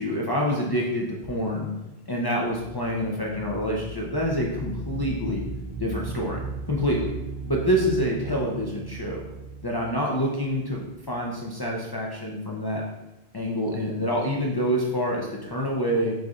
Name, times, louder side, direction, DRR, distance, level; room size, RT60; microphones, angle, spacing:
voice 1, 0.0-1.7 2.1-5.4 5.8-6.4 6.7-7.1 7.5-9.2 9.6-12.8 13.3-16.1, equal, 40° left, -3 dB, 0.3 m, -27 dB
sound 1, 2.5-11.1, right 3 dB, 80° right, 0.9 m, -37 dB
4.7 x 3.8 x 2.4 m, 0.97 s
omnidirectional pair, 1.1 m